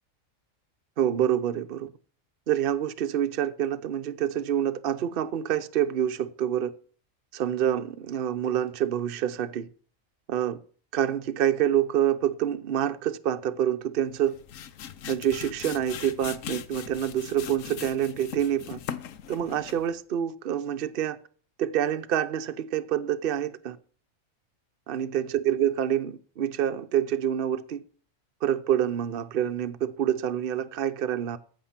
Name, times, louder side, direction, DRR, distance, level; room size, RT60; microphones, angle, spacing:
voice 1, 1.0-1.9 2.5-6.7 7.3-9.7 10.3-10.6 10.9-14.4 15.1-18.8 19.3-21.2 21.6-23.8 24.9-27.8 28.4-31.4, right 10 dB, 50° right, 0.8 m, -27 dB
sound 1, 14.1-19.9, left 9 dB, 75° left, 1.1 m, -40 dB
14.5 x 5.9 x 5.7 m
omnidirectional pair, 1.4 m